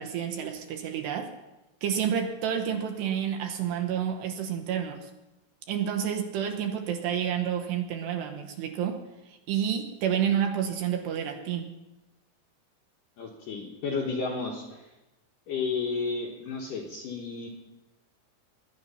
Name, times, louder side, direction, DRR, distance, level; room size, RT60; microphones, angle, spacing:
voice 1, 0.0-1.3 1.8-5.1 5.7-11.7, right 8 dB, 75° right, 5 dB, 2.7 m, -29 dB
voice 2, 13.2-14.9 15.5-17.5, left 4 dB, 70° left, 0 dB, 2.1 m, -32 dB
20.5 x 10.5 x 5.6 m, 1.0 s
omnidirectional pair, 5.6 m